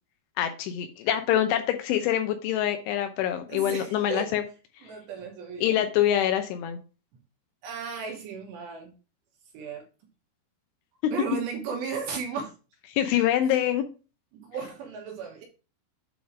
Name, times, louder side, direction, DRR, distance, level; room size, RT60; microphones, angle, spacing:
voice 1, 0.4-4.4 4.8-4.9 5.6-6.8 11.0-11.1 12.9-13.8, left 11 dB, 80° left, 7 dB, 2.9 m, -25 dB
voice 2, 3.5-4.4 4.8-5.9 7.6-8.9 9.5-9.9 11.1-12.5 14.3-15.4, right 6 dB, 70° right, 1 dB, 3.1 m, -35 dB
8.6 x 3.8 x 4.9 m, 0.33 s
omnidirectional pair, 5.9 m